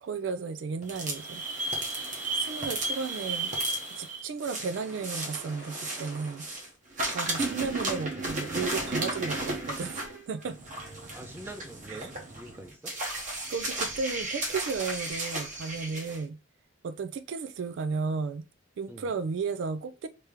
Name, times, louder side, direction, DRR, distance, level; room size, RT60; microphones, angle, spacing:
voice 1, 0.0-1.4 2.4-3.5 4.0-6.5 7.1-10.0 10.3-10.6 11.9-12.1 13.5-16.4 16.8-18.4 18.8-20.1, right 5 dB, 70° right, 0.3 m, -34 dB
sound 1, 0.8-6.7 7.0-16.2, right 2 dB, 40° right, 1.0 m, -34 dB
voice 2, 11.1-12.9 18.9-19.1, right 1 dB, 10° right, 0.6 m, -45 dB
3.3 x 2.8 x 3.5 m
head